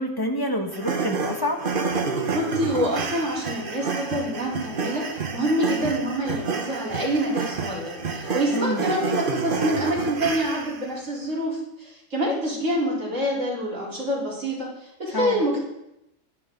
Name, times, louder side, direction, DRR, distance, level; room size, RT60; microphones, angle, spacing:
voice 1, 0.0-1.6 8.5-8.8 15.1-15.4, left 1 dB, 15° left, 2 dB, 1.6 m, -27 dB
sound 1, 0.7-10.9, right 4 dB, 45° right, 1.2 m, -29 dB
voice 2, 2.3-15.7, equal, 70° right, -6 dB, 4.5 m, -26 dB
16.0 x 11.5 x 3.9 m, 0.85 s
omnidirectional pair, 1.4 m